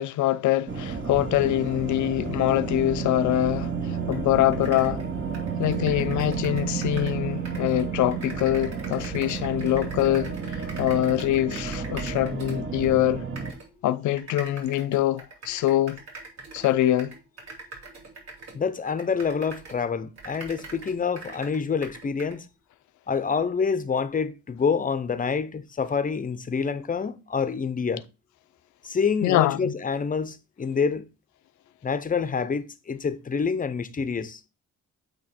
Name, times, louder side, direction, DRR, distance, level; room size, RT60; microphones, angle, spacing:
voice 1, 0.0-5.0 5.6-13.2 13.8-16.0 16.5-17.2 29.2-29.7, left 13 dB, 70° left, 0.6 m, -24 dB
sound 1, 0.7-13.5, right 6 dB, 40° right, 1.0 m, -31 dB
sound 2, 4.1-4.2 4.5-7.2 7.4-12.9 13.4-13.7 14.2-19.8 20.2-22.4, right 3 dB, 60° right, 2.8 m, -43 dB
voice 2, 18.5-22.5 23.1-28.0 28.8-31.1 31.8-34.4, left 5 dB, 30° left, 0.6 m, -27 dB
8.5 x 3.0 x 4.3 m
cardioid pair, 90°, 30 cm